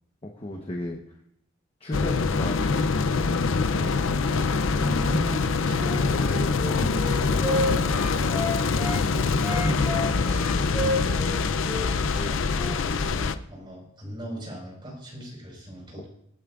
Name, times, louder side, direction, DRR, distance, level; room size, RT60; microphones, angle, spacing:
voice 1, 0.2-1.0 1.8-3.0 15.9-16.0, left 1 dB, 30° left, 1 dB, 1.1 m, -35 dB
sound 1, 1.9-13.4, left 4 dB, 65° left, 0.6 m, -24 dB
voice 2, 4.6-8.0 9.0-11.2 12.8-16.0, equal, 25° right, -1 dB, 4.9 m, -37 dB
Wind instrument woodwind instrument, 5.7-9.0 9.4-12.8, left 1 dB, 5° right, 5.3 m, -31 dB
24.5 x 9.1 x 2.5 m, 0.74 s
head